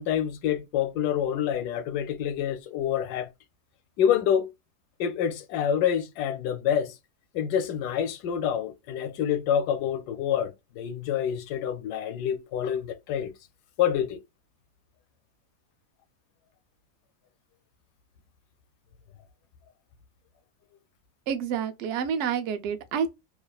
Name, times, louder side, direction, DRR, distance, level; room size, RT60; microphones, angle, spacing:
voice 1, 0.0-3.3 4.0-4.5 5.0-6.9 7.3-13.3 13.8-14.2, left 9 dB, 85° left, 1.1 m, -27 dB
voice 2, 21.3-23.1, right 7 dB, 70° right, 0.7 m, -28 dB
2.8 x 2.3 x 2.2 m
omnidirectional pair, 1.7 m